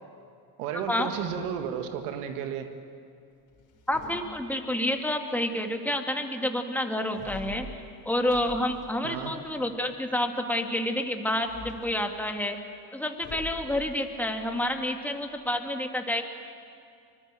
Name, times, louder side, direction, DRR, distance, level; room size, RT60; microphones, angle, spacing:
voice 1, 0.6-2.7 9.0-9.3, right 8 dB, 90° right, 7 dB, 1.9 m, -33 dB
sound 1, 0.8-2.2 3.5-4.9 7.1-9.7 11.3-12.0 13.2-15.6, left 2 dB, 40° left, 4.1 m, -45 dB
voice 2, 3.9-7.7 8.1-12.6 12.9-16.2, left 1 dB, 5° left, 4 dB, 2.4 m, -29 dB
25.0 x 20.5 x 7.9 m, 2.4 s
supercardioid pair, 90°, 45 cm